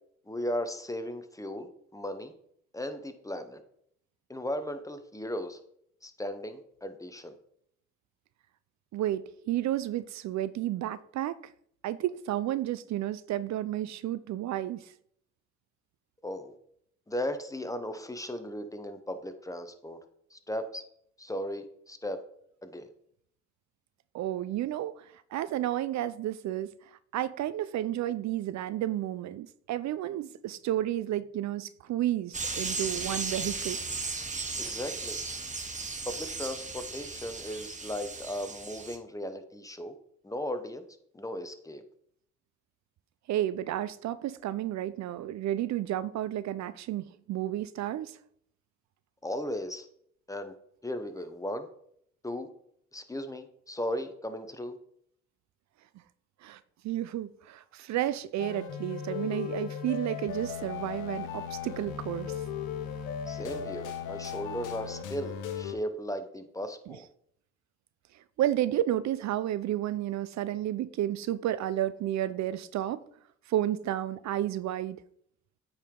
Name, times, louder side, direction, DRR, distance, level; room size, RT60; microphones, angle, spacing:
voice 1, 0.3-2.3 2.7-3.6 4.3-5.6 6.0-7.3 16.2-16.5 17.1-20.0 20.3-20.8 21.2-22.2 22.6-22.9 34.6-35.2 36.1-39.9 40.2-40.8 41.1-41.8 49.2-49.9 50.3-50.5 50.8-51.7 52.2-52.5 52.9-54.8 63.3-67.1, equal, 10° left, 0.8 m, -36 dB
voice 2, 8.9-11.4 11.8-14.9 24.1-26.7 27.1-33.8 43.3-48.2 56.4-56.6 56.8-62.4 66.9-67.0 68.4-73.0 73.5-75.0, right 13 dB, 65° right, 0.4 m, -31 dB
sound 1, 32.3-39.0, right 4 dB, 25° right, 1.0 m, -36 dB
sound 2, 58.4-65.7, left 8 dB, 90° left, 1.0 m, -37 dB
8.6 x 4.8 x 3.7 m
cardioid pair, 90°, 30 cm